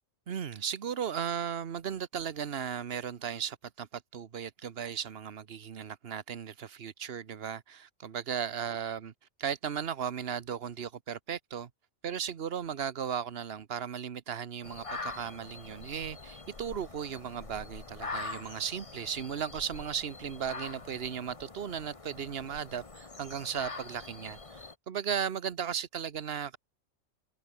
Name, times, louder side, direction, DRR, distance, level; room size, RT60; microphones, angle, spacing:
voice 1, 0.3-9.1 9.4-11.7 12.0-26.6, right 8 dB, 55° right, 1.2 m, -36 dB
sound 1, 14.6-24.7, left 3 dB, 25° left, 1.4 m, -44 dB
omnidirectional pair, 1.3 m